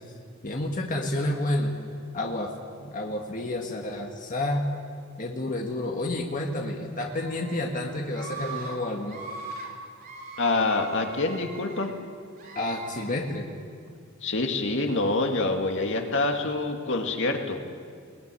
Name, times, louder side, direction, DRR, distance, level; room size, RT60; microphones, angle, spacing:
voice 1, 0.4-1.7 2.1-2.5 2.8-4.7 5.2-9.2 12.6-13.5, left 1 dB, 40° left, 1 dB, 1.8 m, -30 dB
Screaming, 7.0-7.6 8.1-8.8 9.0-9.7 10.0-11.9 12.4-13.1, right 3 dB, 45° right, 4.6 m, -40 dB
voice 2, 10.4-11.9 14.2-17.6, left 2 dB, 60° left, 3 dB, 2.2 m, -26 dB
21.5 x 20.5 x 9.9 m, 2.2 s
head